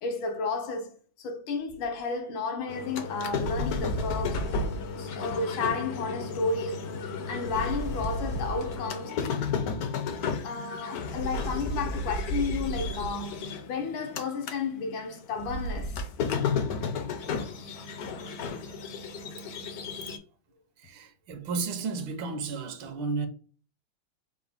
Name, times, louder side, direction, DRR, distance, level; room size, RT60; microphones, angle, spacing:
voice 1, 0.0-4.5 4.9-6.8 7.3-9.2 10.4-16.1, left 4 dB, 80° left, 1.6 m, -32 dB
sound 1, 1.7-1.9 3.3-5.0 7.4-8.8 11.1-13.3 15.4-16.0, right 2 dB, 35° left, 0.6 m, -34 dB
sound 2, 2.7-14.6 14.9-20.2, left 6 dB, 65° left, 0.9 m, -34 dB
voice 2, 20.8-23.3, right 4 dB, 75° right, 1.5 m, -33 dB
5.6 x 2.1 x 3.4 m
omnidirectional pair, 2.2 m